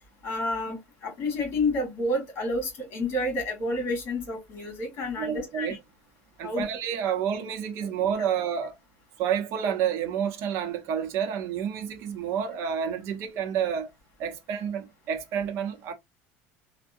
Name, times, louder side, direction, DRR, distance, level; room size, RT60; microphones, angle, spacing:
voice 1, 0.2-5.8 6.4-6.7, left 2 dB, 40° left, 1.9 m, -29 dB
voice 2, 5.2-5.8 6.4-8.8 9.2-13.9 14.2-15.9, right 8 dB, 50° right, 0.7 m, -29 dB
3.4 x 2.1 x 2.6 m
cardioid pair, 145°, 6 cm